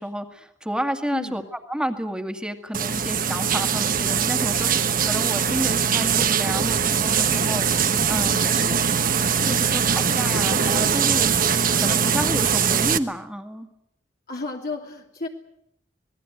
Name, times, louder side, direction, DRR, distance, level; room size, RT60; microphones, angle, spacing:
voice 1, 0.0-1.4 1.7-8.6 9.4-13.7, equal, 5° right, 6 dB, 2.0 m, -31 dB
sound 1, 2.7-13.0, right 7 dB, 50° right, 1.2 m, -21 dB
voice 2, 8.3-8.9 14.3-15.3, left 2 dB, 55° left, 0 dB, 2.9 m, -33 dB
26.0 x 20.0 x 8.0 m, 0.77 s
head